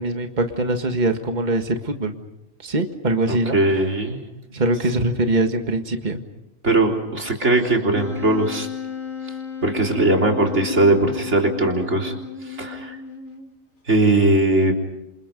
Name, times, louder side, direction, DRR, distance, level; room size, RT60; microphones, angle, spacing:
voice 1, 0.0-2.2 2.6-3.6 4.5-6.2, right 2 dB, 35° right, 6 dB, 1.8 m, -22 dB
voice 2, 3.3-4.2 6.6-8.7 9.6-12.1 12.4-13.0 13.9-14.7, right 2 dB, 60° right, 1 dB, 4.0 m, -19 dB
Wind instrument woodwind instrument, 7.9-13.6, left 7 dB, 85° left, 3.3 m, -33 dB
28.5 x 27.0 x 5.3 m, 0.91 s
omnidirectional pair, 1.4 m